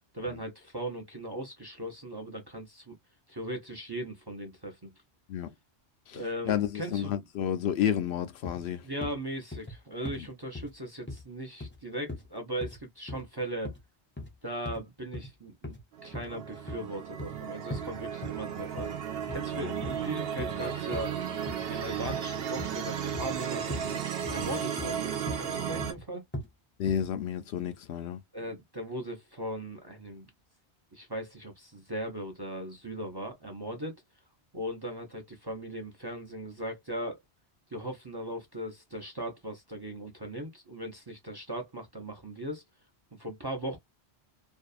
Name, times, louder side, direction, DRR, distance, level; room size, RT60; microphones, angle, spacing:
voice 1, 0.1-2.9 3.3-4.9 6.1-7.2 8.8-13.7 14.4-15.8 16.0-18.9 19.3-21.1 21.7-26.2 28.3-30.3 30.9-34.0 34.5-37.2 37.7-42.6 43.1-43.8, right 1 dB, 30° right, 0.5 m, -38 dB
voice 2, 6.5-8.9 10.2-10.3 19.5-19.7 25.7-25.8 26.8-28.2, left 9 dB, 75° left, 0.8 m, -31 dB
sound 1, 8.4-8.6 9.0-9.2 9.5-9.8 10.1-10.2 10.5-10.7 11.1-11.2 11.6-11.8 12.1-12.3 12.6-12.8 13.1-13.2 13.6-13.8 14.2-14.3 14.7-14.8 15.1-15.3 15.6-15.8 16.1-16.3 16.7-17.4 17.7-17.8 18.2-18.4 18.8-19.0 19.3-19.5 19.8-20.0 20.4-20.6 20.9-21.1 21.5-21.7 22.1-22.2 22.6-22.8 23.1-23.4 23.7-23.9 24.3-24.5 24.8-25.0 25.3-25.5 25.8-26.0 26.3-26.5 26.9-27.1, left 2 dB, 15° left, 0.6 m, -39 dB
sound 2, 15.9-25.9, right 8 dB, 65° right, 0.9 m, -34 dB
2.7 x 2.3 x 2.3 m
omnidirectional pair, 1.1 m